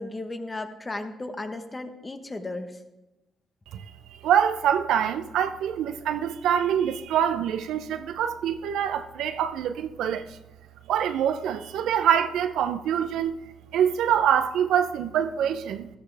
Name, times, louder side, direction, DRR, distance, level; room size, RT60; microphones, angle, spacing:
voice 1, 0.0-2.8, left 2 dB, 20° left, 1.2 m, -35 dB
voice 2, 4.2-10.4 10.9-13.4 13.7-15.9, right 9 dB, 80° right, 0.7 m, -25 dB
13.5 x 13.0 x 3.4 m
cardioid pair, 90°, 0 cm